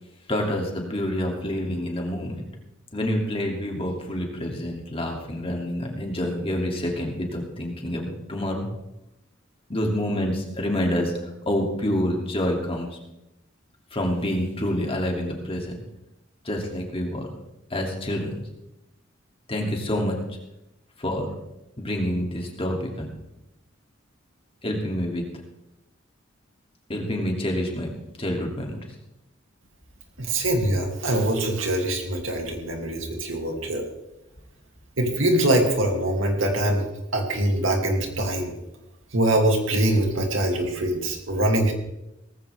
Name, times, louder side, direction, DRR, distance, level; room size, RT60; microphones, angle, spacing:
voice 1, 0.3-2.5 2.9-8.7 9.7-11.1 11.4-12.9 13.9-15.7 16.4-17.3 17.7-18.4 19.5-20.2 21.0-21.3 21.8-23.1 24.6-25.2 26.9-27.9 28.2-28.8, left 1 dB, 30° left, 1 dB, 2.7 m, -27 dB
voice 2, 30.2-33.8 35.0-36.8 37.1-38.5 39.1-41.7, right 1 dB, 70° right, 2 dB, 2.8 m, -23 dB
18.5 x 15.0 x 3.5 m, 0.92 s
head